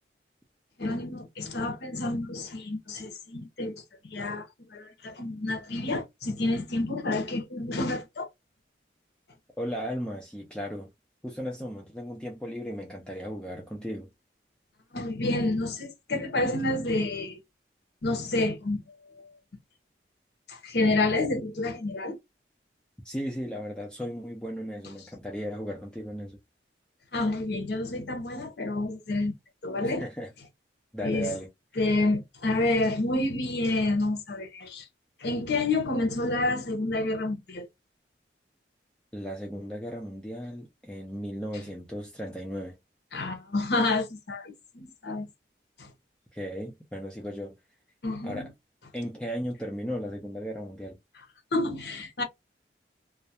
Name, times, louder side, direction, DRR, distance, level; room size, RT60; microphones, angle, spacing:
voice 1, 0.8-3.8 4.0-8.3 14.9-17.4 18.0-18.8 19.1-19.3 20.5-22.2 27.1-29.3 29.6-30.0 31.0-31.3 31.8-34.9 35.2-37.7 43.1-45.3 45.8-45.9 48.0-48.5 51.5-52.2, left 2 dB, 70° left, 0.7 m, -29 dB
voice 2, 9.6-10.9 11.2-14.1 23.0-26.4 29.8-30.3 30.9-31.5 39.1-42.8 46.3-47.5 48.2-48.5 48.9-51.0, equal, 5° left, 0.4 m, -36 dB
2.3 x 2.1 x 2.7 m
head